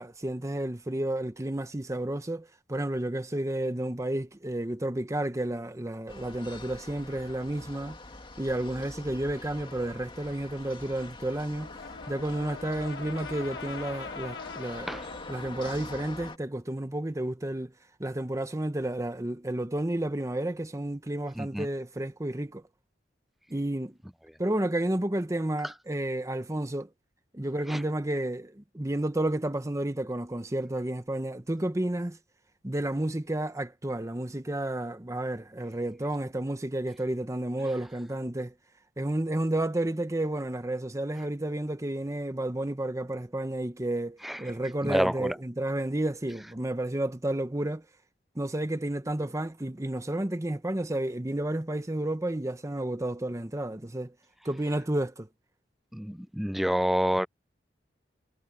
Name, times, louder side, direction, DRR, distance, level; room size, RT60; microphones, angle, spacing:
voice 1, 0.0-8.0 8.4-11.7 12.1-14.9 15.3-17.7 18.0-22.6 23.5-24.0 24.4-26.9 27.3-32.2 32.6-38.5 39.0-47.9 48.3-54.1 54.4-55.3, right 1 dB, 20° right, 0.9 m, -31 dB
sound 1, 6.1-16.4, left 2 dB, 30° left, 2.4 m, -44 dB
Brass instrument, 11.5-15.6, left 5 dB, 80° left, 1.2 m, -43 dB
voice 2, 21.4-21.7 25.6-25.7 27.7-27.8 44.2-44.4 44.8-45.4 55.9-57.3, equal, ahead, 0.4 m, -28 dB
head